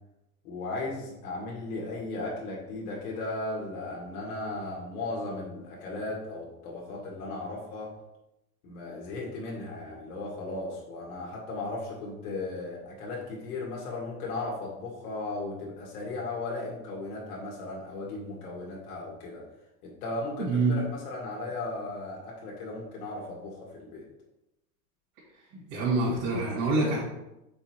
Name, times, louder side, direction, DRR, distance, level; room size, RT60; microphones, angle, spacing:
voice 1, 0.4-7.9 8.6-19.4 19.8-24.1, left 2 dB, 65° left, -3 dB, 2.1 m, -36 dB
voice 2, 20.4-20.8 25.5-27.0, right 3 dB, 45° right, -7 dB, 2.2 m, -26 dB
5.6 x 4.2 x 4.4 m, 0.91 s
supercardioid pair, 140°, 46 cm